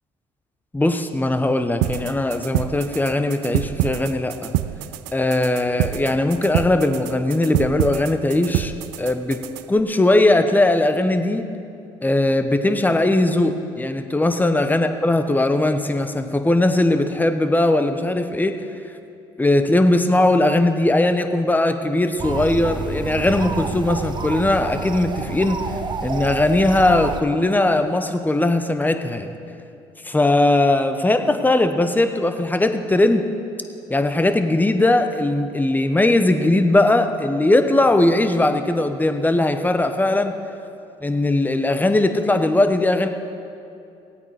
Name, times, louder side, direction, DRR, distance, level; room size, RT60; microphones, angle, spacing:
voice 1, 0.7-4.5 5.1-8.7 9.0-11.5 12.0-18.6 19.4-25.6 26.0-29.3 30.0-33.3 33.9-40.3 41.0-43.1, left 2 dB, 15° left, 8 dB, 1.1 m, -19 dB
sound 1, 1.8-9.8, right 15 dB, 80° right, 0.4 m, -27 dB
sound 2, 22.2-27.2, right 5 dB, 35° right, 1.0 m, -29 dB
18.0 x 8.6 x 5.0 m, 2.6 s
hypercardioid pair, 60°, 13 cm